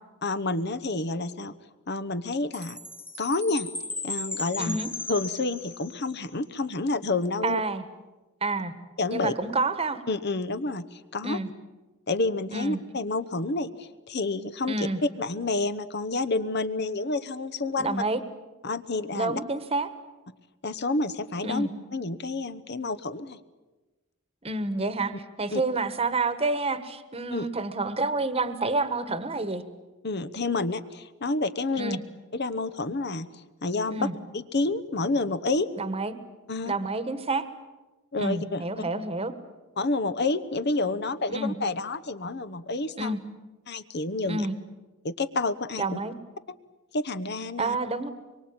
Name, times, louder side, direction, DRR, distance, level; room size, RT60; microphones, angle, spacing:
voice 1, 0.2-1.5 1.9-2.8 3.2-3.7 4.0-4.8 5.1-7.6 9.0-9.3 10.1-11.4 12.1-14.9 15.2-18.0 18.6-19.4 20.6-23.4 25.5-25.6 27.3-27.5 30.0-32.0 32.3-33.3 33.6-35.7 36.5-36.7 38.1-38.6 39.8-43.2 43.7-44.5 45.0-46.0 46.9-47.8, left 3 dB, 50° left, 12 dB, 1.0 m, -29 dB
Chime, 2.5-6.2, left 2 dB, 10° left, 1.6 m, -36 dB
voice 2, 4.6-4.9 7.4-7.8 8.4-8.7 9.1-10.0 11.2-11.5 12.5-12.8 14.7-15.0 17.7-18.2 19.1-19.9 21.4-21.7 24.4-29.6 31.7-32.0 33.9-34.1 35.7-36.2 36.7-37.5 38.2-39.3 41.3-41.5 43.0-43.2 44.3-44.5 45.8-46.1 47.6-48.1, right 3 dB, 25° right, 12 dB, 1.4 m, -29 dB
25.0 x 23.5 x 8.8 m, 1.2 s
head